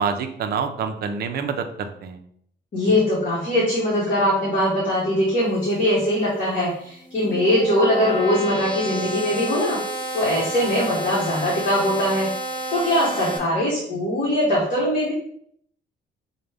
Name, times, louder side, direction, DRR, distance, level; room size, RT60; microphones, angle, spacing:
voice 1, 0.0-2.2, right 6 dB, 55° right, 7 dB, 0.4 m, -27 dB
voice 2, 2.7-9.8 10.1-12.3 12.7-15.1, left 1 dB, 45° left, -6 dB, 1.1 m, -21 dB
sound 1, 6.9-13.4, right 2 dB, 25° left, 0.7 m, -30 dB
5.0 x 2.1 x 3.3 m, 0.67 s
cardioid pair, 165°, 20 cm